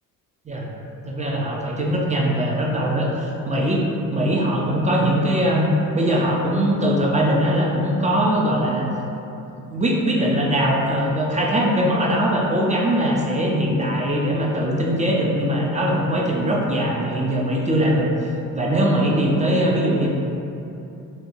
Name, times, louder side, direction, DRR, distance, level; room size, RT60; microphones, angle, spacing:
voice 1, 1.0-3.9 4.1-8.9 9.7-18.1 18.5-20.1, equal, 20° right, -3 dB, 0.5 m, -21 dB
4.4 x 2.3 x 2.6 m, 2.8 s
supercardioid pair, 75°, 34 cm